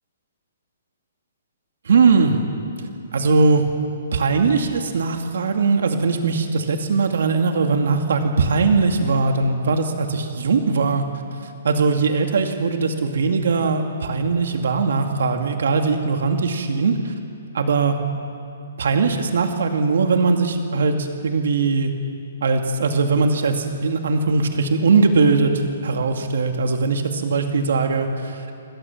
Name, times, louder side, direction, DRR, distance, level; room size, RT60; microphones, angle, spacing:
voice 1, 1.9-2.4 3.1-3.6 4.1-11.0 11.6-17.1 17.5-18.0 18.8-21.9 22.4-25.5 25.8-28.6, right 4 dB, 70° right, 4 dB, 2.4 m, -20 dB
27.0 x 24.0 x 7.3 m, 2.6 s
hypercardioid pair, 170°, 0 cm